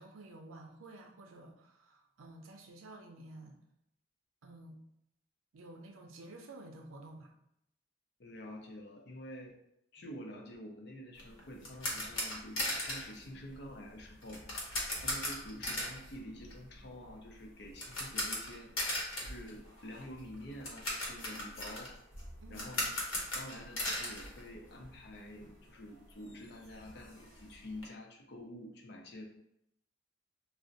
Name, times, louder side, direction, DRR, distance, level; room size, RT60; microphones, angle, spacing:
voice 1, 0.0-3.6 4.4-4.8 5.5-7.3 22.4-22.9, right 2 dB, 85° right, 3 dB, 0.5 m, -51 dB
voice 2, 8.2-9.6 9.9-18.7 19.2-21.9 22.5-23.0 23.3-29.2, left 1 dB, 55° left, 1 dB, 0.5 m, -48 dB
sound 1, 11.2-25.1 25.4-25.5 26.0-26.1 26.3-27.8, left 1 dB, 85° left, 0.9 m, -39 dB
2.5 x 2.0 x 3.8 m, 0.77 s
head